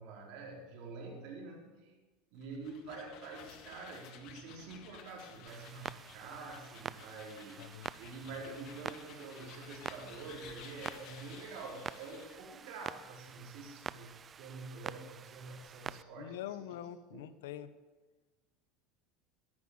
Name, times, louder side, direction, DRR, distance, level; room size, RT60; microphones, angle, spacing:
voice 1, 0.0-1.9 2.3-7.7 8.0-16.7 17.1-17.3, right 3 dB, 65° right, -1 dB, 4.2 m, -47 dB
sound 1, 2.3-12.4, left 8 dB, 55° left, 1.8 m, -55 dB
Clock, 5.5-16.0, right 7 dB, 25° right, 0.4 m, -47 dB
voice 2, 7.6-7.9 16.2-17.7, left 11 dB, 90° left, 14 dB, 0.9 m, -44 dB
13.0 x 11.0 x 7.3 m, 1.3 s
supercardioid pair, 130°, 0 cm